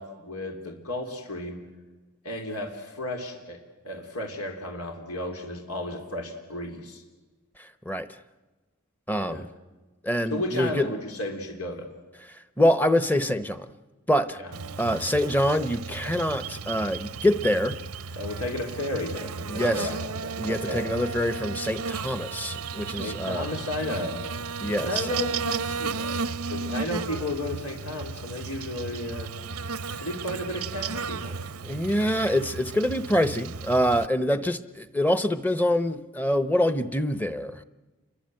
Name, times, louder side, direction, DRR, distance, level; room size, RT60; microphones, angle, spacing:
voice 1, 0.0-1.6 2.2-7.0 9.3-9.5 10.3-11.9 14.4-14.6 16.0-16.2 18.2-20.9 22.9-24.2 24.7-29.3 30.0-31.5, left 1 dB, 85° left, 3 dB, 3.6 m, -33 dB
voice 2, 7.6-8.1 9.1-9.5 10.0-10.9 12.6-13.7 14.1-14.4 14.8-17.8 19.5-19.9 20.4-23.5 24.6-24.9 31.6-37.6, equal, 10° left, 12 dB, 0.9 m, -25 dB
Buzz, 14.5-34.1, right 5 dB, 90° right, 0.8 m, -34 dB
29.0 x 23.0 x 7.8 m, 1.2 s
head